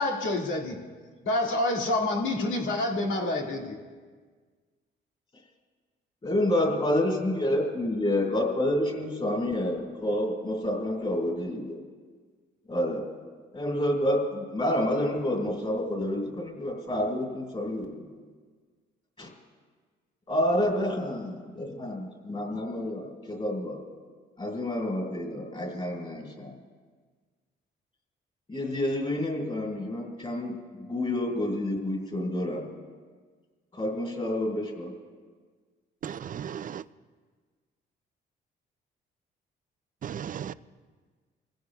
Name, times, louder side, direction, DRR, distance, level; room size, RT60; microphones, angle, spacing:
voice 1, 0.0-0.8 1.3-3.8, left 2 dB, 80° left, -1 dB, 2.1 m, -27 dB
voice 2, 6.2-11.8 12.7-13.0 13.5-18.0 19.2-19.3 20.3-23.8 24.4-26.6 28.5-32.6 33.7-34.9, left 1 dB, 30° left, -1 dB, 4.7 m, -29 dB
voice 3, 36.0-36.8 40.0-40.5, right 9 dB, 45° right, 15 dB, 0.4 m, -35 dB
24.5 x 15.5 x 2.4 m, 1.5 s
cardioid pair, 90°, 20 cm